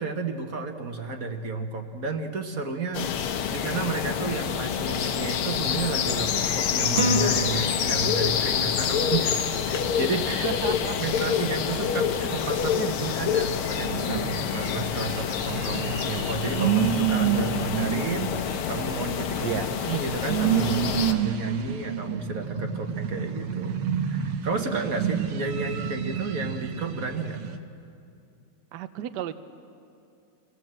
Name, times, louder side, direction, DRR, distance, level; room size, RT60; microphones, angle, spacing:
voice 1, 0.0-9.4 9.7-10.5 11.0-19.6 19.9-23.8 24.0-27.4, right 4 dB, 45° right, 5 dB, 1.5 m, -32 dB
sound 1, 2.9-21.1, left 8 dB, 85° left, 1.8 m, -27 dB
sound 2, 7.0-8.5, equal, 30° right, 1.2 m, -28 dB
voice 2, 10.4-10.9 11.6-11.8 19.4-19.7 28.7-29.3, right 11 dB, 65° right, 11 dB, 1.2 m, -33 dB
sound 3, 13.7-27.6, right 9 dB, 80° right, 1.8 m, -29 dB
26.0 x 17.5 x 7.7 m, 2.5 s
omnidirectional pair, 2.3 m